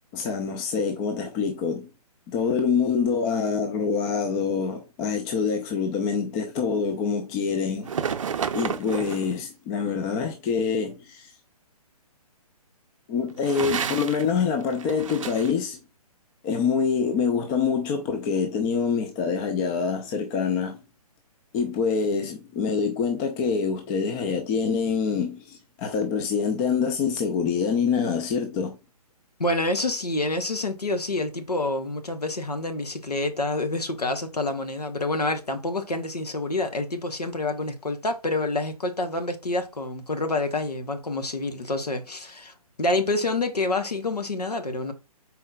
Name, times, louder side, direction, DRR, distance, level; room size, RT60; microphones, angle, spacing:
voice 1, 0.1-1.9 2.3-7.9 8.5-11.3 13.1-15.8 16.4-20.8 21.5-28.8, left 6 dB, 15° left, 0.4 m, -25 dB
sound 1, 7.8-9.4 13.3-14.3 14.6-15.5, right 7 dB, 55° right, 0.5 m, -30 dB
voice 2, 29.4-44.9, left 2 dB, 80° left, 1.1 m, -27 dB
5.4 x 4.3 x 2.3 m
figure-of-eight pair, 130°, 20 cm